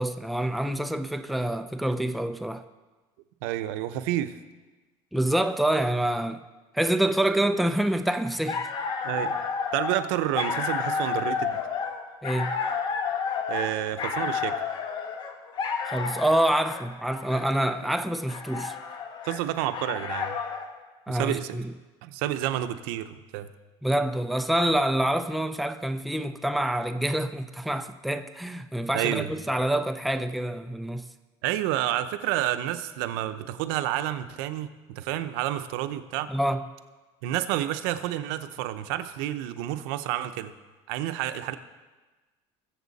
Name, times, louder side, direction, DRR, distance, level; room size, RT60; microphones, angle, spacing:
voice 1, 0.0-2.6 5.1-6.4 6.7-8.7 12.2-12.6 15.9-18.8 21.1-21.7 23.8-31.0 36.3-36.6, right 1 dB, ahead, 0.4 m, -26 dB
voice 2, 3.4-4.3 9.0-9.4 9.7-11.6 13.5-14.5 19.2-20.4 21.1-21.6 22.0-23.5 28.9-29.3 31.4-36.3 37.2-40.5 40.9-41.5, right 13 dB, 90° right, 0.8 m, -29 dB
sound 1, 8.3-20.7, left 5 dB, 40° left, 1.2 m, -31 dB
21.0 x 7.4 x 4.1 m
cardioid pair, 145°, 12 cm